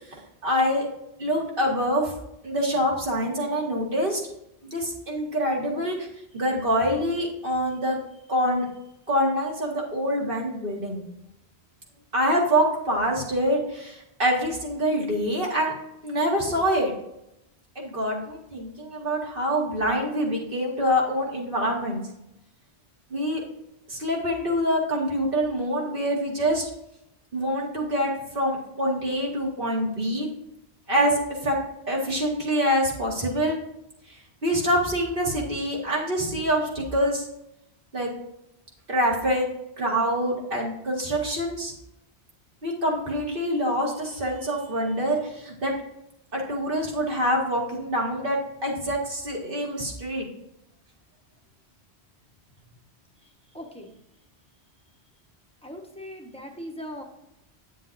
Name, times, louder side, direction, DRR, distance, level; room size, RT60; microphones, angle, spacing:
voice 1, 0.4-0.9 1.2-2.1 2.4-4.2 4.6-6.1 6.3-8.0 8.3-8.7 9.1-11.0 12.1-15.7 16.0-16.9 17.8-22.0 23.1-23.4 23.9-26.7 27.3-30.3 30.9-31.6 31.9-33.6 34.4-37.3 37.9-38.1 38.9-39.5 39.8-41.7 42.6-45.7 46.3-50.3, equal, 55° right, -2 dB, 2.1 m, -25 dB
voice 2, 53.2-53.9 55.6-57.0, equal, 5° left, 1 dB, 1.1 m, -40 dB
9.0 x 7.7 x 2.6 m, 0.83 s
omnidirectional pair, 1.1 m